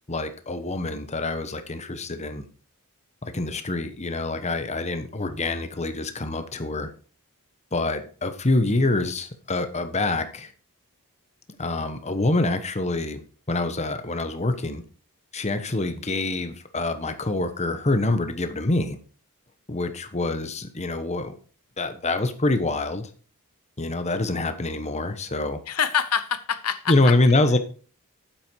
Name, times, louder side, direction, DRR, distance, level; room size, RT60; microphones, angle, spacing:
voice 1, 0.1-2.4 3.2-6.9 7.7-10.5 11.6-13.2 13.5-14.8 15.3-19.0 19.7-21.3 21.8-23.1 23.8-25.6 26.9-27.6, left 2 dB, 30° left, 9 dB, 1.1 m, -25 dB
voice 2, 25.7-27.1, left 8 dB, 85° left, 13 dB, 1.0 m, -25 dB
8.9 x 7.8 x 4.7 m, 0.39 s
head